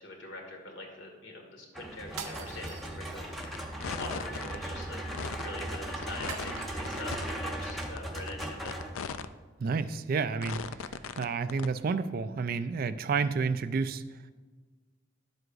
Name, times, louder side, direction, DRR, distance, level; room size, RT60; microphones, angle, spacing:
voice 1, 0.0-5.0 5.3-8.8, left 1 dB, 65° left, 1 dB, 1.9 m, -44 dB
sound 1, 1.7-9.4, right 1 dB, ahead, 0.9 m, -38 dB
sound 2, 2.1-3.6 6.3-7.2, right 5 dB, 85° right, 0.8 m, -43 dB
sound 3, 3.4-3.6 3.8-4.6 5.0-5.6 6.0-6.6 6.8-7.3 7.7-9.3 9.7-9.8 10.4-11.2 11.5-11.7, left 7 dB, 80° left, 0.4 m, -38 dB
voice 2, 9.6-10.6 11.1-14.0, right 5 dB, 45° right, 12 dB, 0.3 m, -30 dB
11.0 x 7.7 x 2.5 m, 1.4 s
head